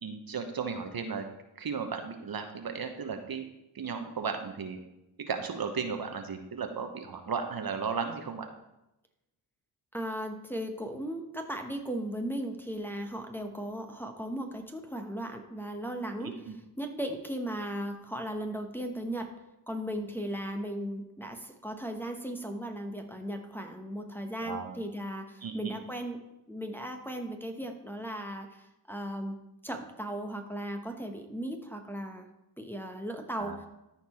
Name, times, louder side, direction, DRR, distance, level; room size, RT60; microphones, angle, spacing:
voice 1, 0.0-1.3 1.6-3.4 3.7-4.8 5.3-8.5 16.2-16.6 24.4-24.7 25.4-25.8 33.4-33.6, right 5 dB, 50° right, 6 dB, 1.2 m, -35 dB
voice 2, 9.9-16.4 16.8-19.3 19.7-26.2 26.5-29.4 29.6-32.3 32.6-33.7, right 1 dB, 5° left, 3 dB, 1.2 m, -37 dB
13.5 x 4.5 x 4.3 m, 0.91 s
cardioid pair, 65°, 47 cm